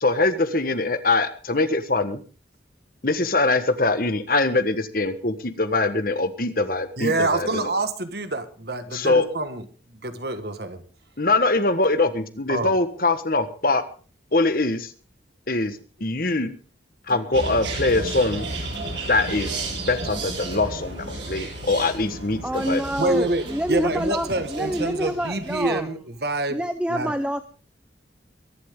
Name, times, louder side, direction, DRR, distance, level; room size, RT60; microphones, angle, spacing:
voice 1, 0.0-2.2 3.0-7.7 8.9-9.3 11.2-13.8 14.3-14.9 15.5-16.5 17.1-18.5 19.1-22.8, left 2 dB, 50° left, 1.5 m, -23 dB
voice 2, 7.0-9.7 9.9-10.8 12.5-12.7 23.0-26.6 26.9-27.1, right 2 dB, 60° right, 1.7 m, -26 dB
sound 1, 17.1-25.1, left 1 dB, 30° right, 2.6 m, -44 dB
sound 2, 17.3-25.8, right 2 dB, 80° right, 7.2 m, -33 dB
voice 3, 22.4-25.9 26.5-27.4, right 1 dB, 5° right, 0.6 m, -27 dB
23.0 x 11.5 x 3.8 m
head